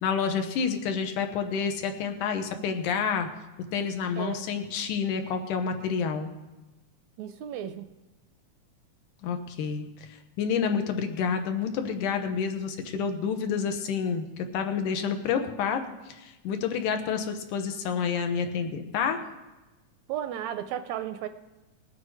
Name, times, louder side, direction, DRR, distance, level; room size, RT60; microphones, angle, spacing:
voice 1, 0.0-3.3 3.7-6.3 9.2-19.2, left 6 dB, 85° left, 6 dB, 2.6 m, -29 dB
voice 2, 4.2-4.5 7.2-7.9 20.1-21.3, right 10 dB, 80° right, 9 dB, 1.7 m, -34 dB
19.5 x 8.2 x 4.8 m, 1.1 s
omnidirectional pair, 3.5 m